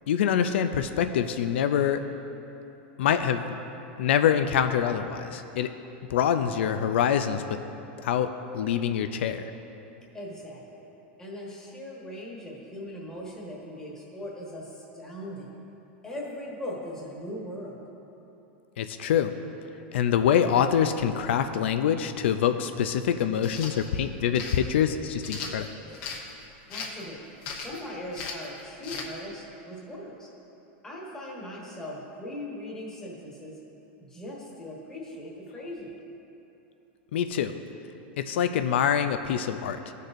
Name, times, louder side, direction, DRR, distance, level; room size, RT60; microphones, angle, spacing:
voice 1, 0.1-2.0 3.0-3.6 4.0-5.7 6.1-7.6 8.0-8.3 8.5-9.5 18.8-19.3 19.9-25.7 37.1-37.6 38.2-39.9, left 8 dB, 90° left, 9 dB, 0.4 m, -25 dB
voice 2, 10.1-10.9 11.2-15.5 16.0-17.8 26.7-27.2 27.5-30.3 30.8-33.6 34.0-35.9, left 1 dB, 10° left, -4 dB, 1.3 m, -39 dB
sound 1, 23.4-23.7 24.3-24.6 25.2-26.2 26.7-27.0 27.4-27.8 28.1-28.5 28.8-29.1, left 5 dB, 45° left, 0.9 m, -37 dB
15.0 x 6.5 x 2.6 m, 3.0 s
supercardioid pair, 165°, 6 cm